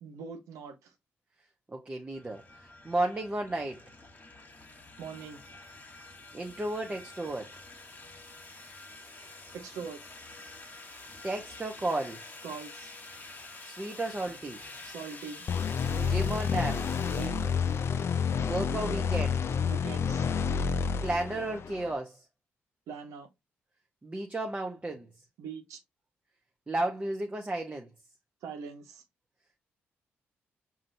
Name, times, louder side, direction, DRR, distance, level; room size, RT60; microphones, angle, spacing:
voice 1, 0.0-0.9 4.5-5.4 9.5-10.2 12.4-12.9 14.8-15.5 17.1-17.5 19.6-20.3 22.9-23.3 25.4-25.8 28.4-29.0, right 6 dB, 80° right, 0.9 m, -42 dB
voice 2, 1.7-3.8 6.3-7.5 11.2-12.2 13.6-14.6 16.0-16.8 18.4-19.4 21.0-22.2 24.0-25.1 26.7-27.9, right 2 dB, 25° right, 0.8 m, -33 dB
sound 1, 2.1-18.9, left 2 dB, 35° left, 1.3 m, -48 dB
sound 2, 15.5-21.9, left 6 dB, 55° left, 0.4 m, -29 dB
5.1 x 2.8 x 2.6 m
supercardioid pair, 50°, 5 cm